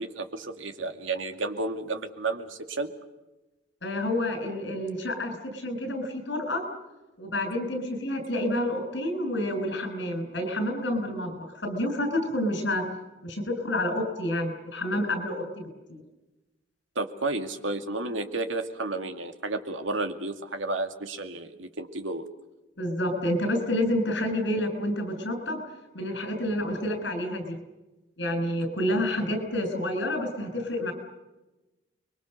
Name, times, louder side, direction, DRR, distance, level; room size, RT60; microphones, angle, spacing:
voice 1, 0.0-2.9 17.0-22.2, right 2 dB, 85° right, 6 dB, 2.4 m, -32 dB
voice 2, 3.8-6.6 7.2-12.8 13.2-15.6 15.9-16.0 22.8-25.6 25.9-27.6 28.2-30.9, left 1 dB, 65° left, 6 dB, 6.6 m, -29 dB
29.0 x 23.0 x 6.7 m, 1.1 s
head